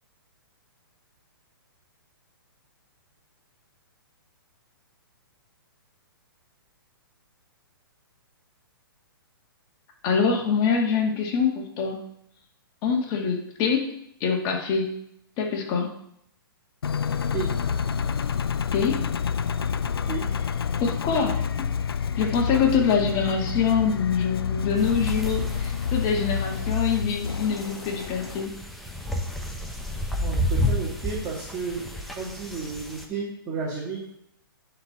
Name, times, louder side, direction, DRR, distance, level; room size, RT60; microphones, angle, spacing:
voice 1, 10.0-12.0 12.8-13.9 14.2-15.0 15.4-15.9 18.7-19.1 20.8-21.7 22.2-28.5, left 6 dB, 35° left, 1 dB, 2.0 m, -25 dB
Engine, 16.8-28.5, left 7 dB, 85° left, 0.5 m, -28 dB
sound 1, 24.8-33.0, left 1 dB, ahead, 1.0 m, -32 dB
voice 2, 30.2-34.1, right 5 dB, 25° right, -5 dB, 2.3 m, -32 dB
10.5 x 4.6 x 5.9 m, 0.73 s
hypercardioid pair, 125°, 12 cm